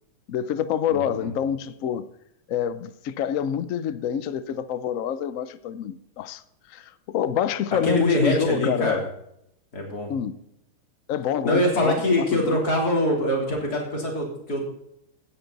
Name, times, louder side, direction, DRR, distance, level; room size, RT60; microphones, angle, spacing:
voice 1, 0.3-2.1 2.5-6.4 6.7-9.1 10.1-10.4 11.1-12.6, left 9 dB, 85° left, 0.7 m, -27 dB
voice 2, 0.9-1.3 7.8-9.0 9.7-10.1 11.4-14.7, left 1 dB, 45° left, 3.8 m, -23 dB
17.0 x 10.0 x 4.0 m
omnidirectional pair, 2.4 m